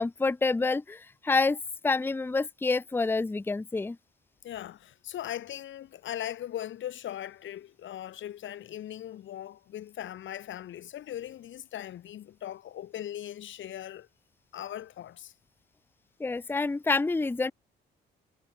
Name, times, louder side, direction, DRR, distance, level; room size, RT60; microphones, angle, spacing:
voice 1, 0.0-1.6 1.8-4.0 16.2-17.5, left 3 dB, 10° left, 0.6 m, -27 dB
voice 2, 4.4-14.1 14.5-15.3, left 11 dB, 75° left, 6.1 m, -39 dB
cardioid pair, 90°, 20 cm